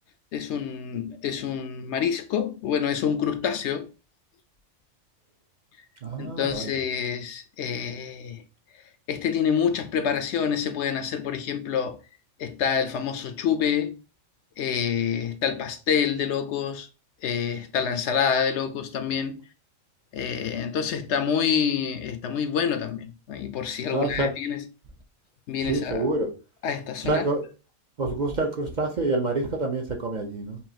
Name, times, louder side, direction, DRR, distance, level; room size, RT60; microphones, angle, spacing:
voice 1, 0.3-3.9 6.2-8.4 9.1-12.0 12.4-14.0 14.6-16.9 17.2-19.4 20.1-24.6 25.5-26.1 26.6-27.3, left 7 dB, 75° left, 0.9 m, -27 dB
voice 2, 6.0-6.7 23.9-24.3 25.6-26.3 27.0-27.5 28.0-30.6, right 2 dB, 45° right, 0.7 m, -27 dB
5.5 x 2.5 x 2.7 m
omnidirectional pair, 1.2 m